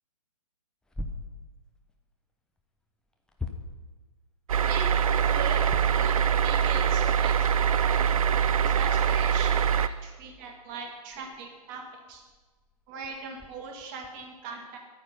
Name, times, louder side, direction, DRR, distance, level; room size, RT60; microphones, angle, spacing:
sound 1, 0.8-2.0 2.5-4.0 4.5-6.2 6.6-6.7 7.3-7.4 8.1-14.3, left 2 dB, 5° left, 0.8 m, -43 dB
sound 2, 4.5-9.9, right 8 dB, 60° right, 0.6 m, -24 dB
voice 1, 5.2-5.6 5.9-8.1 8.6-11.8 12.1-12.2 12.9-14.8, right 5 dB, 35° right, 2 dB, 2.3 m, -40 dB
11.0 x 9.3 x 5.6 m, 1.3 s
hypercardioid pair, 140°, 20 cm